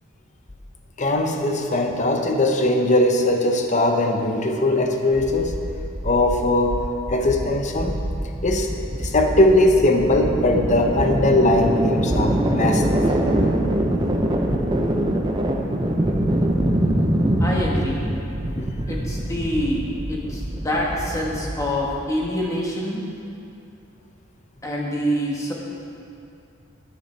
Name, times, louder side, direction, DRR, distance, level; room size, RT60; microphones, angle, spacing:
voice 1, 1.0-5.5 6.0-6.8 7.1-8.0 8.4-8.7 9.0-12.8, left 1 dB, 35° left, 4 dB, 0.7 m, -20 dB
sound 1, 5.2-22.2, right 1 dB, 20° right, 0.7 m, -24 dB
voice 2, 17.4-18.0 18.9-23.0 24.6-25.5, equal, 15° left, -3 dB, 1.4 m, -26 dB
11.5 x 9.6 x 3.4 m, 2.6 s
head